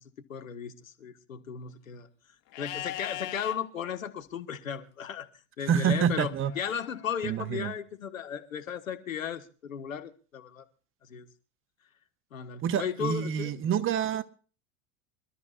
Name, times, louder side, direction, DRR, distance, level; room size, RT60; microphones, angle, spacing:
voice 1, 0.0-2.1 2.6-5.3 5.6-10.7 11.0-11.3 12.3-13.6, left 8 dB, 80° left, 1.7 m, -36 dB
Livestock farm animals working animals, 2.5-3.6 6.4-7.4, left 14 dB, 50° left, 2.0 m, -40 dB
voice 2, 5.7-6.5 7.2-7.7 12.6-14.2, right 8 dB, 30° right, 1.2 m, -27 dB
27.0 x 13.5 x 2.5 m
hypercardioid pair, 85°, 39 cm